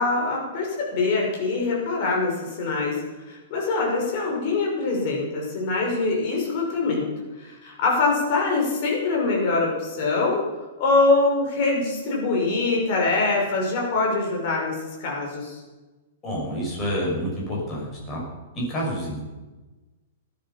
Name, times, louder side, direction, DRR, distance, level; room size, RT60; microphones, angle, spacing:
voice 1, 0.0-7.1 7.4-10.4 10.8-15.6, left 3 dB, 40° left, -1 dB, 5.7 m, -24 dB
voice 2, 16.2-18.2 18.5-19.2, equal, 15° left, -4 dB, 6.8 m, -28 dB
17.5 x 12.5 x 5.9 m, 1.2 s
hypercardioid pair, 170°, 0 cm